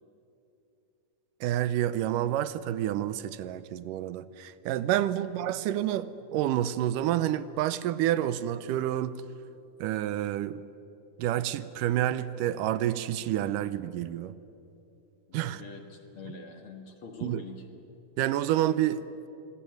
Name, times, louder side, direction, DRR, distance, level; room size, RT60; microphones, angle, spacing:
voice 1, 1.4-9.2 9.8-10.6 11.2-14.4 15.3-15.6 17.2-17.4 18.2-19.3, right 12 dB, 85° right, 2.4 m, -29 dB
voice 2, 15.3-17.7, left 4 dB, 50° left, 2.2 m, -45 dB
25.5 x 20.0 x 9.4 m
omnidirectional pair, 3.7 m